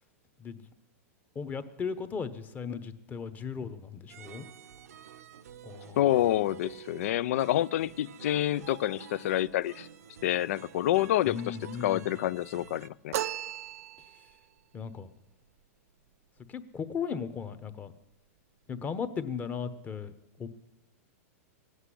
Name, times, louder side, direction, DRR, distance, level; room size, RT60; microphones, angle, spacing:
voice 1, 1.3-4.5 5.6-6.0 11.3-12.1 14.7-15.1 16.5-17.9 18.7-20.1 20.4-20.5, left 6 dB, 20° left, 1.0 m, -36 dB
sound 1, 4.1-12.9, right 8 dB, 85° right, 0.8 m, -49 dB
voice 2, 6.0-9.9 10.2-13.1, left 13 dB, 65° left, 0.4 m, -28 dB
sound 2, 13.1-14.4, right 12 dB, 70° right, 0.5 m, -35 dB
17.0 x 8.1 x 9.9 m
hypercardioid pair, 135°, 8 cm